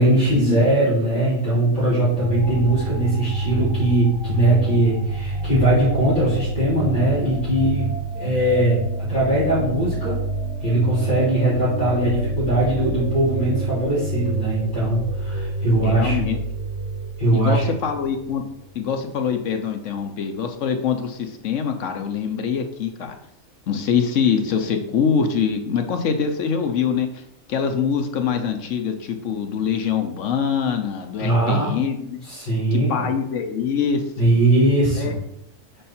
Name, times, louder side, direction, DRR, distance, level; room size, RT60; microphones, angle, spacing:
voice 1, 0.0-10.2 10.6-16.2 17.2-17.7 31.2-31.7 32.2-32.9 34.2-35.1, right 1 dB, 35° left, -10 dB, 3.2 m, -20 dB
sound 1, 2.1-18.5, right 2 dB, 55° right, 3.2 m, -28 dB
voice 2, 15.8-16.4 17.3-18.4 18.7-23.1 23.7-27.2 27.5-32.2 32.7-34.3 35.0-35.1, left 7 dB, 65° left, 6 dB, 1.0 m, -24 dB
5.5 x 5.2 x 4.3 m, 0.80 s
omnidirectional pair, 1.4 m